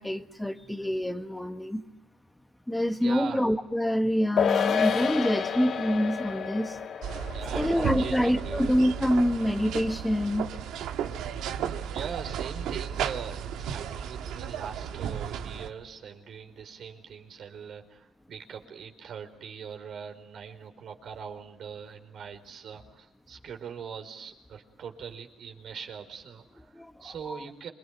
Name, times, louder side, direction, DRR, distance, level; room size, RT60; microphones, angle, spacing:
voice 1, 0.0-1.8 2.7-6.8 7.5-10.5 26.7-27.4, equal, 5° left, 7 dB, 1.4 m, -26 dB
voice 2, 3.0-3.4 7.3-8.8 11.8-27.7, right 7 dB, 65° right, 4 dB, 4.4 m, -41 dB
sound 1, 4.4-11.0 11.3-11.4, left 7 dB, 65° left, 2.1 m, -31 dB
sound 2, 7.0-15.7, right 8 dB, 90° right, 1.7 m, -34 dB
27.5 x 22.5 x 9.5 m, 0.96 s
cardioid pair, 90°, 0 cm